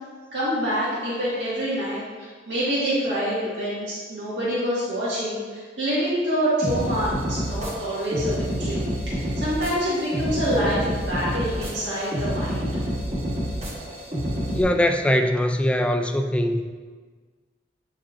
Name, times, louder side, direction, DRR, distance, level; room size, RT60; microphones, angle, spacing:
voice 1, 0.3-12.7, equal, 70° right, -9 dB, 1.8 m, -26 dB
sound 1, 6.6-14.6, equal, 35° right, 1.2 m, -28 dB
voice 2, 14.5-16.6, left 1 dB, 5° left, 5 dB, 0.3 m, -21 dB
8.3 x 5.4 x 2.5 m, 1.5 s
head